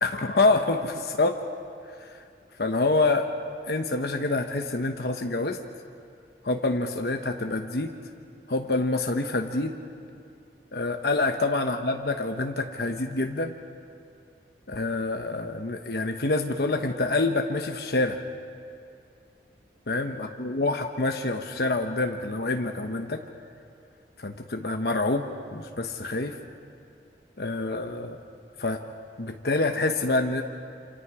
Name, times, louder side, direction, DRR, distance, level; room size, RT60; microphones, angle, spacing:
voice 1, 0.0-1.4 2.6-3.3 3.7-5.6 6.4-7.9 8.5-9.7 10.7-13.5 14.7-18.2 19.9-23.2 24.2-25.3 25.5-26.4 27.4-28.2 28.6-28.8 29.2-30.4, left 2 dB, 65° left, 4 dB, 1.0 m, -26 dB
28.5 x 27.0 x 4.9 m, 2.3 s
head